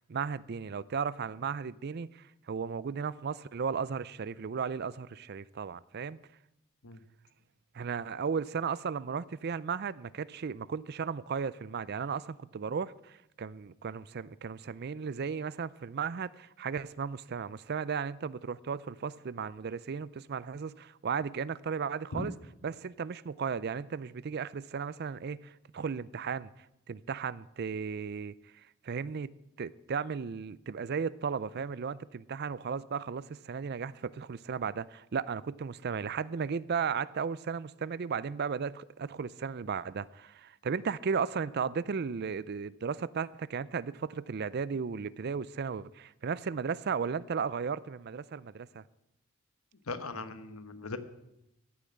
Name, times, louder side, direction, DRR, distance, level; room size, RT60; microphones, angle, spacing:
voice 1, 0.0-6.2 7.7-22.3 22.6-29.3 29.6-48.8, right 6 dB, 50° right, 0.4 m, -35 dB
voice 2, 49.9-51.0, left 3 dB, 90° left, 1.2 m, -38 dB
14.5 x 7.0 x 8.6 m
head